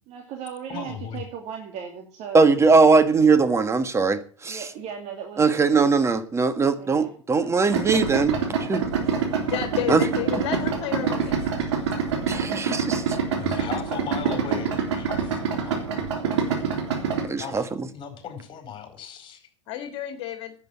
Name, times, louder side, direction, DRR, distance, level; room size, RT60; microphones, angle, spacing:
voice 1, 0.1-2.5 4.4-6.0 6.8-7.5 9.2-9.4, right 7 dB, 50° right, 2.5 m, -38 dB
voice 2, 0.7-1.2 13.3-16.1 17.4-17.7 17.9-19.5, left 8 dB, 35° left, 4.9 m, -37 dB
voice 3, 2.3-4.6 5.4-8.8 9.9-10.0 12.2-13.2 17.3-17.6, right 4 dB, 20° right, 1.6 m, -20 dB
Idling, 7.7-17.3, right 6 dB, 70° right, 3.5 m, -26 dB
voice 4, 9.5-11.5 11.9-12.1 19.7-20.5, left 12 dB, 55° left, 2.2 m, -31 dB
10.5 x 8.6 x 8.4 m
hypercardioid pair, 95°, 15 cm